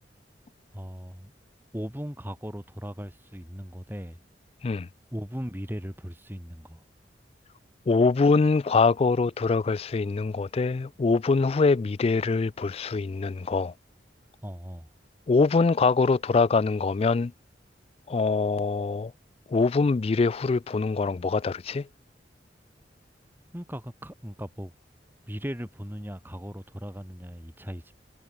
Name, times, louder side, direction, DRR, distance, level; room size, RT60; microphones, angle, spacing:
voice 1, 0.7-1.3 1.7-4.2 5.1-6.8 14.4-14.9 23.5-24.7 25.3-27.9, equal, 10° right, 3.7 m, -38 dB
voice 2, 7.9-13.7 15.3-17.3 18.1-19.1 19.5-21.9, left 4 dB, 35° left, 0.3 m, -23 dB
head